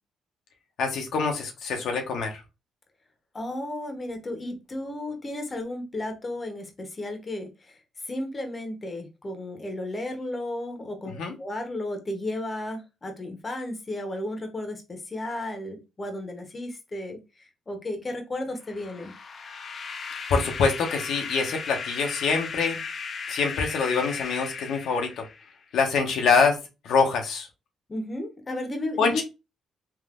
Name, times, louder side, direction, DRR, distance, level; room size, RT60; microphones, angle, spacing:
voice 1, 0.8-2.4 11.2-11.3 20.3-22.8 23.3-25.3 25.7-26.6 26.8-27.5 29.0-29.2, left 5 dB, 75° left, 0.7 m, -25 dB
voice 2, 3.3-7.8 8.0-19.1 27.9-29.2, left 1 dB, 30° left, 0.8 m, -34 dB
sound 1, 18.6-25.6, left 5 dB, 45° left, 0.5 m, -36 dB
3.4 x 2.5 x 2.4 m
cardioid pair, 90°, 0 cm